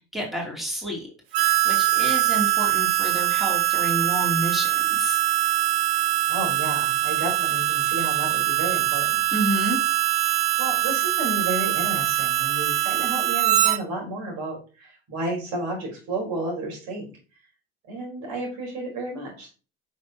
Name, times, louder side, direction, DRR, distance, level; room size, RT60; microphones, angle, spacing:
voice 1, 0.1-1.1 1.4-5.2 9.3-9.8, equal, ahead, -2 dB, 2.8 m, -29 dB
Harmonica, 1.3-13.8, right 15 dB, 85° right, 0.8 m, -23 dB
voice 2, 6.3-9.2 10.6-17.0 17.9-19.5, right 1 dB, 65° right, -1 dB, 4.2 m, -32 dB
7.1 x 6.2 x 2.9 m, 0.35 s
hypercardioid pair, 80°, 30 cm